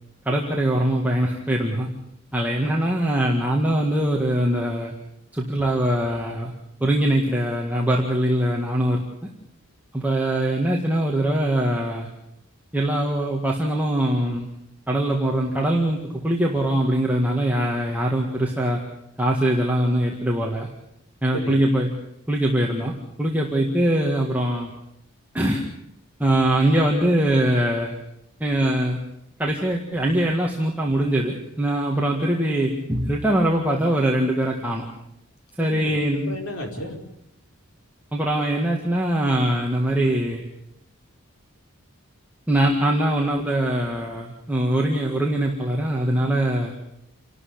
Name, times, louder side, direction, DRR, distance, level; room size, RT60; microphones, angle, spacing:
voice 1, 0.3-1.9 2.3-4.9 5.3-6.5 6.8-9.0 9.9-12.1 12.7-14.5 14.9-16.0 16.2-18.8 19.2-20.7 21.2-21.9 22.3-22.9 23.2-24.7 25.3-25.6 26.2-27.9 28.4-29.0 29.4-34.9 35.6-36.4 38.1-40.5 42.5-46.7, right 1 dB, 5° right, -2 dB, 1.9 m, -22 dB
voice 2, 21.3-21.6 35.6-36.0 36.2-37.0, left 1 dB, 75° left, 2 dB, 4.9 m, -33 dB
29.0 x 12.5 x 8.7 m, 0.80 s
head